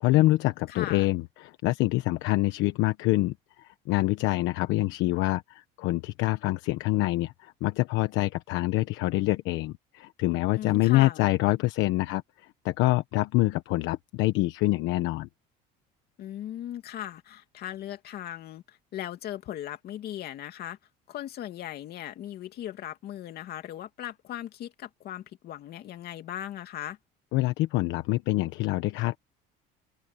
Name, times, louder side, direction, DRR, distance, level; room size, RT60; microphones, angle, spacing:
voice 1, 0.0-12.2 12.6-15.3 27.3-29.2, left 18 dB, 75° left, 1.2 m, -26 dB
voice 2, 0.7-1.1 10.5-11.2 16.2-20.8 21.1-27.0, left 12 dB, 55° left, 2.7 m, -38 dB
open air
cardioid pair, 135°, 19 cm